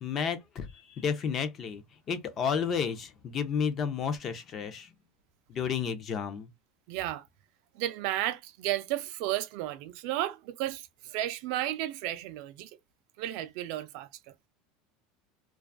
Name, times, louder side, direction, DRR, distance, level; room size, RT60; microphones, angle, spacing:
voice 1, 0.0-1.8 2.1-4.9 5.5-6.5, left 6 dB, 30° left, 0.4 m, -31 dB
voice 2, 6.9-7.3 7.8-12.7 13.2-14.1, right 14 dB, 55° right, 0.3 m, -33 dB
2.4 x 2.3 x 2.3 m
supercardioid pair, 160°, 0 cm